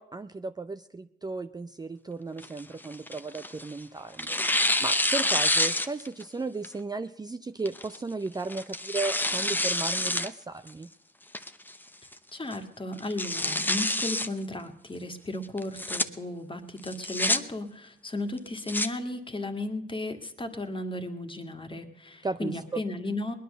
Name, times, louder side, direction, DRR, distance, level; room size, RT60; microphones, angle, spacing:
voice 1, 0.0-10.9 22.2-22.8, right 3 dB, 20° right, 10 dB, 0.5 m, -35 dB
Tearing, 2.4-3.7 4.2-6.2 6.6-6.7 7.7-8.0 8.5-10.3 10.7-10.8 11.3-11.8 12.1-12.2 12.5-12.6 13.0-14.3 15.6-16.0 16.8-17.4 18.4-18.9, left 1 dB, 10° left, 0.8 m, -27 dB
voice 2, 12.3-23.3, left 1 dB, 25° left, 6 dB, 1.8 m, -35 dB
20.0 x 10.5 x 6.6 m, 0.83 s
cardioid pair, 75°, 20 cm